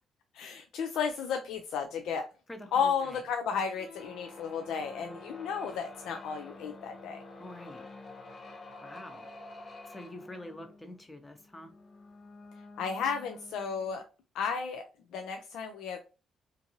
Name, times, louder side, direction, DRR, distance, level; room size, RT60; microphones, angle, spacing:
voice 1, 0.3-2.2 2.7-7.2 12.8-14.0 14.3-14.8 15.1-16.0, left 6 dB, 80° left, 0.3 m, -33 dB
voice 2, 2.5-3.2 7.4-7.9 8.8-9.3 9.9-11.7, left 1 dB, 15° left, 0.7 m, -46 dB
sound 1, 3.7-14.0, left 2 dB, 55° left, 0.7 m, -49 dB
2.5 x 2.5 x 2.7 m
cardioid pair, 90°, 0 cm